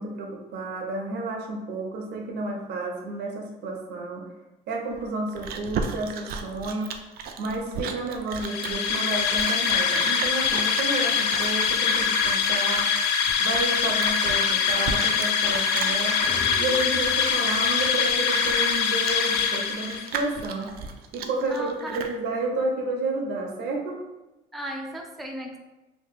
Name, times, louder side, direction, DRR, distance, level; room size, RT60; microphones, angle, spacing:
voice 1, 0.0-4.2 4.7-6.9 7.4-12.9 13.4-16.2 16.6-20.7 21.1-24.0, right 2 dB, 80° right, 1 dB, 0.8 m, -31 dB
Chewing mastication, 4.9-22.2, right 6 dB, 65° right, 0.4 m, -36 dB
sound 1, 8.4-20.2, left 6 dB, 85° left, 0.4 m, -24 dB
sound 2, 16.2-18.5, left 2 dB, 60° left, 1.3 m, -41 dB
voice 2, 21.4-22.1 24.5-25.6, right 1 dB, ahead, 1 dB, 0.4 m, -36 dB
2.9 x 2.4 x 3.6 m, 1.1 s
cardioid pair, 110°, 17 cm